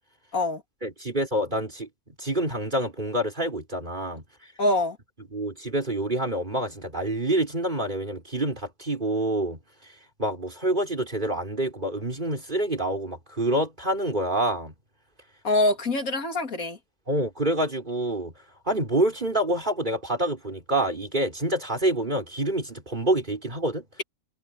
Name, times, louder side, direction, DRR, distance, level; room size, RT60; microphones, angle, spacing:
voice 1, 0.8-4.2 5.3-9.6 10.2-14.7 17.1-18.3 18.7-23.8, right 1 dB, 30° right, 5.3 m, -27 dB
voice 2, 4.6-5.0 15.4-16.8, left 2 dB, 70° left, 3.1 m, -24 dB
omnidirectional pair, 1.5 m